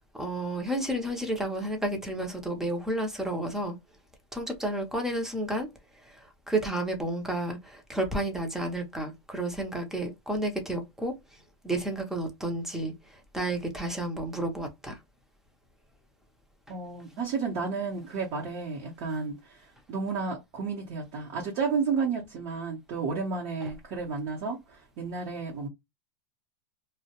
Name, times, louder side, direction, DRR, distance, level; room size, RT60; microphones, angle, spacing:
voice 1, 0.1-3.8 4.3-5.7 6.0-11.1 11.6-12.9 13.3-15.0, right 1 dB, 5° right, 0.5 m, -31 dB
voice 2, 16.7-25.7, right 5 dB, 40° right, 0.7 m, -32 dB
2.2 x 2.0 x 2.8 m
supercardioid pair, 140°, 13 cm